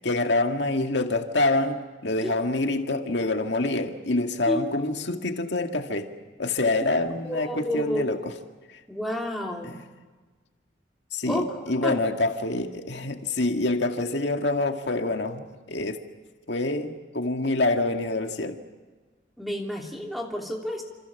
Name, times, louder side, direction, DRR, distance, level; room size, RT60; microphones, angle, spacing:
voice 1, 0.0-6.1 6.4-8.3 8.7-8.8 9.6-9.8 11.1-16.0 16.5-18.6, left 2 dB, 80° left, 5 dB, 1.9 m, -26 dB
voice 2, 7.2-8.2 8.9-9.8 11.3-11.6 11.8-12.0 19.4-20.8, equal, ahead, 1 dB, 3.2 m, -30 dB
27.5 x 27.0 x 7.1 m, 1.3 s
head